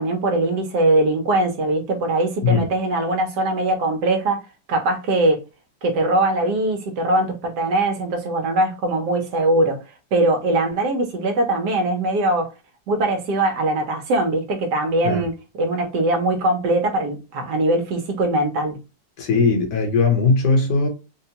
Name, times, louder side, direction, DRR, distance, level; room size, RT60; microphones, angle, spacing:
voice 1, 0.0-4.4 4.7-5.4 5.8-9.8 10.1-12.5 12.9-15.3 15.6-18.8, right 2 dB, 70° right, 1.3 m, -21 dB
voice 2, 19.2-20.9, left 4 dB, 70° left, 1.6 m, -19 dB
4.1 x 2.2 x 2.8 m
omnidirectional pair, 1.9 m